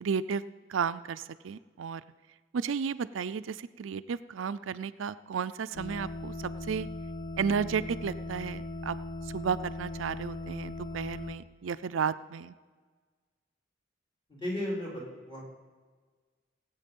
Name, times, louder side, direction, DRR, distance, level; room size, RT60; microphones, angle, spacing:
voice 1, 0.0-0.4 0.7-2.0 2.5-6.9 7.4-9.0 9.2-12.6, right 6 dB, 85° right, 13 dB, 0.4 m, -33 dB
sound 1, 5.7-11.3, left 1 dB, 65° left, 1.6 m, -39 dB
voice 2, 14.4-15.4, left 1 dB, 25° left, -4 dB, 3.9 m, -34 dB
18.0 x 8.4 x 5.3 m, 1.5 s
head